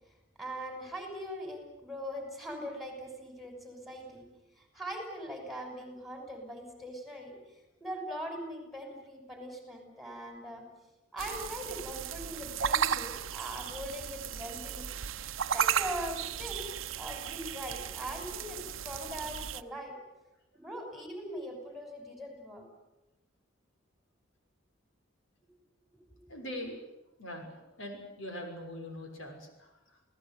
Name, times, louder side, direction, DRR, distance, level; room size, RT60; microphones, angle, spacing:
voice 1, 0.4-4.3 4.6-7.4 7.8-10.7 11.1-14.9 15.5-16.7 17.0-20.0 20.5-22.6 25.4-25.5 26.1-26.3, equal, ahead, 4 dB, 6.3 m, -41 dB
sound 1, 11.2-19.6, right 8 dB, 80° right, 0.8 m, -35 dB
voice 2, 26.3-26.8 27.2-27.5 27.8-29.7, left 1 dB, 70° left, 4 dB, 6.3 m, -41 dB
29.0 x 18.0 x 9.3 m, 0.96 s
head